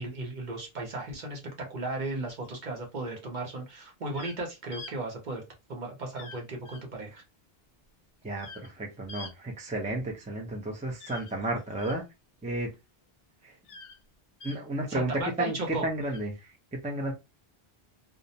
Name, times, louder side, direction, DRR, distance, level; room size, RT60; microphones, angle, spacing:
voice 1, 0.0-5.4 5.7-7.2 14.9-15.8, right 2 dB, 50° right, 0.8 m, -35 dB
sound 1, 2.3-2.8 4.1-4.4 4.7-4.9 6.1-6.4 6.6-6.8 8.4-8.7 9.1-9.3 11.0-12.0 13.6-14.0 14.4-14.6 16.0-16.2, left 3 dB, 70° left, 0.8 m, -45 dB
voice 2, 8.2-12.0 12.4-12.7 13.4-13.6 14.4-17.1, right 1 dB, 10° right, 0.4 m, -32 dB
2.4 x 2.0 x 2.7 m
omnidirectional pair, 1.0 m